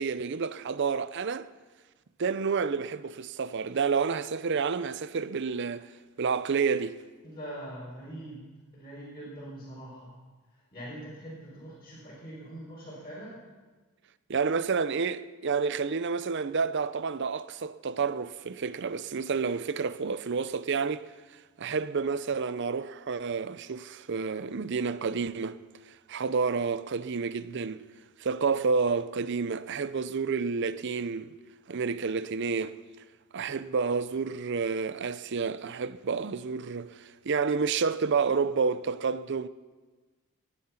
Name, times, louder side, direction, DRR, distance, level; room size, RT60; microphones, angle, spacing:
voice 1, 0.0-1.5 2.2-5.9 6.2-7.0 14.3-21.1 21.6-25.6 26.1-27.8 28.2-31.3 31.7-32.8 33.3-39.5, right 5 dB, 55° right, 0.5 m, -29 dB
voice 2, 7.2-8.4 8.7-10.1 10.5-13.5, right 1 dB, 25° left, 4.3 m, -43 dB
19.5 x 9.9 x 5.7 m
head